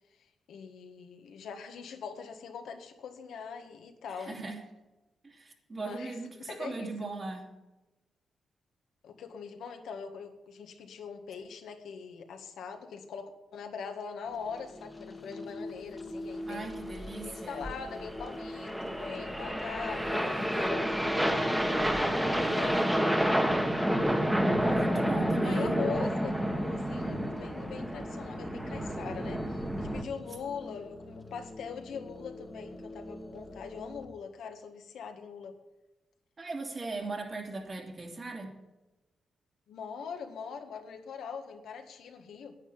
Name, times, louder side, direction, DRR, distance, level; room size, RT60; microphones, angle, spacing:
voice 1, 0.5-4.4 5.8-6.2 6.4-6.9 9.0-16.7 17.3-22.9 25.4-35.6 39.7-42.6, left 6 dB, 85° left, 5 dB, 1.7 m, -42 dB
voice 2, 4.1-4.6 5.2-7.4 16.5-17.7 24.6-25.8 36.4-38.6, right 2 dB, 40° right, 2 dB, 3.0 m, -38 dB
sound 1, 14.3-34.1, left 1 dB, 20° left, 1.5 m, -44 dB
sound 2, 16.7-30.0, equal, 5° right, 1.7 m, -30 dB
10.5 x 8.8 x 8.8 m, 1.1 s
cardioid pair, 75°, 0 cm